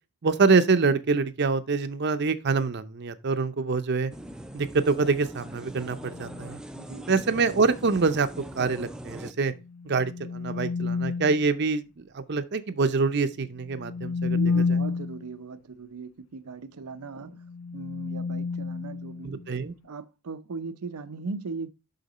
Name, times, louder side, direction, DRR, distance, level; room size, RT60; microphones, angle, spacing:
voice 1, 0.2-4.1 4.5-6.6 7.1-9.5 9.9-14.4 14.7-14.8 19.2-19.7, right 4 dB, 50° right, 0.6 m, -25 dB
sound 1, 4.1-9.3, right 1 dB, 5° right, 0.4 m, -41 dB
sound 2, 6.0-6.5 9.6-11.4 13.6-15.3 17.3-19.6, left 4 dB, 80° left, 0.4 m, -30 dB
voice 2, 6.7-7.1 14.2-17.4 17.7-19.4 19.8-21.7, right 4 dB, 90° right, 0.6 m, -38 dB
6.6 x 5.7 x 4.1 m
head